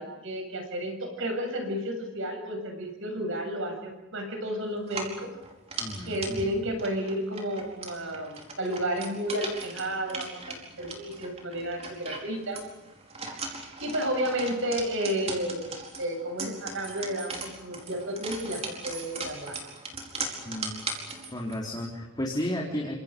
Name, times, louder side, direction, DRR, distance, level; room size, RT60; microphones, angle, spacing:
voice 1, 0.0-5.3 6.1-12.6 13.3-19.6, equal, 65° right, 4 dB, 7.7 m, -32 dB
sound 1, 4.8-21.6, right 3 dB, 30° right, 4.8 m, -39 dB
voice 2, 5.8-6.5 20.5-20.8 21.3-23.0, left 1 dB, 20° left, -2 dB, 3.8 m, -33 dB
29.5 x 26.5 x 5.4 m, 1.0 s
head